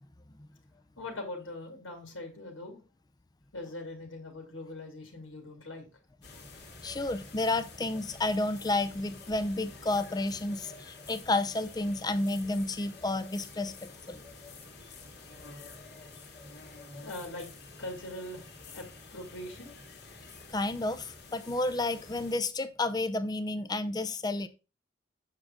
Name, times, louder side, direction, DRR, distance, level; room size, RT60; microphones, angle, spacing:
voice 1, 1.0-2.8 3.5-5.9 17.0-17.5 17.8-19.7, left 1 dB, 80° left, 2.3 m, -42 dB
sound 1, 6.2-22.4, left 3 dB, 60° left, 2.0 m, -49 dB
voice 2, 6.8-14.2 20.5-24.5, left 2 dB, 20° left, 0.5 m, -31 dB
7.4 x 6.2 x 3.7 m
head